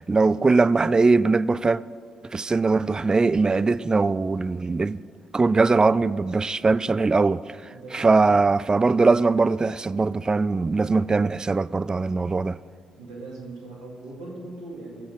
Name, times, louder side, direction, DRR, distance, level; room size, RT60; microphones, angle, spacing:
voice 1, 0.0-1.8 2.2-5.0 5.3-12.6, right 3 dB, 25° right, 0.3 m, -21 dB
voice 2, 7.7-8.4 12.9-15.1, right 2 dB, 80° right, 1.9 m, -40 dB
19.5 x 7.2 x 3.7 m
figure-of-eight pair, 40°, 3 cm